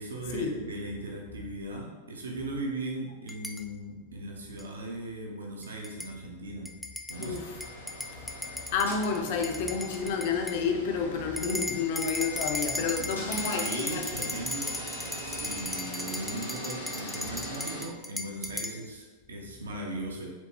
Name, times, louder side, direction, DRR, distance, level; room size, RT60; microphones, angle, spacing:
voice 1, 0.0-6.8 7.1-7.4 12.9-14.8 15.2-20.3, right 1 dB, 70° right, 0 dB, 0.7 m, -38 dB
sound 1, 3.3-3.6 4.6-4.7 5.6-6.1 6.7-10.6 11.4-18.8, left 1 dB, ahead, 0.3 m, -36 dB
sound 2, 7.1-17.8, equal, 75° left, 1.3 m, -42 dB
voice 2, 8.7-14.3, left 5 dB, 50° left, 4 dB, 0.5 m, -30 dB
4.4 x 3.4 x 2.8 m, 1.3 s
figure-of-eight pair, 90°, 0 cm